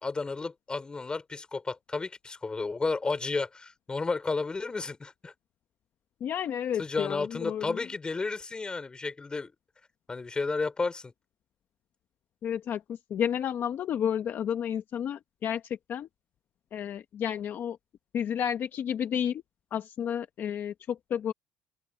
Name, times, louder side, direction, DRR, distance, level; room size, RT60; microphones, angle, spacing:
voice 1, 0.0-5.3 6.8-9.5 10.1-11.1, left 3 dB, 15° left, 4.0 m, -32 dB
voice 2, 6.2-7.8 12.4-16.1 16.7-17.8 18.1-19.4 19.7-21.3, left 9 dB, 45° left, 0.9 m, -31 dB
open air
cardioid pair, 140°, 5 cm